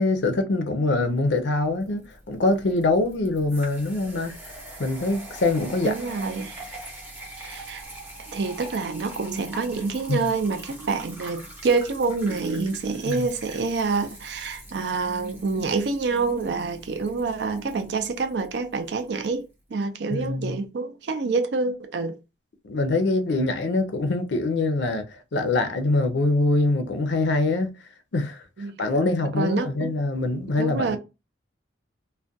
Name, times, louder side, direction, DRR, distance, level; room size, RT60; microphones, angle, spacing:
voice 1, 0.0-4.3 4.8-5.9 10.1-10.3 13.1-13.3 20.1-20.6 22.6-27.7 28.1-28.4 28.8-31.0, left 2 dB, 65° left, 0.5 m, -24 dB
sound 1, 1.3-19.3, right 1 dB, 10° right, 0.6 m, -43 dB
voice 2, 5.8-6.6 7.4-7.8 8.3-19.5 19.7-22.2 28.6-28.7 29.0-30.0 30.6-31.0, right 4 dB, 60° right, 0.4 m, -27 dB
2.3 x 2.1 x 2.6 m
head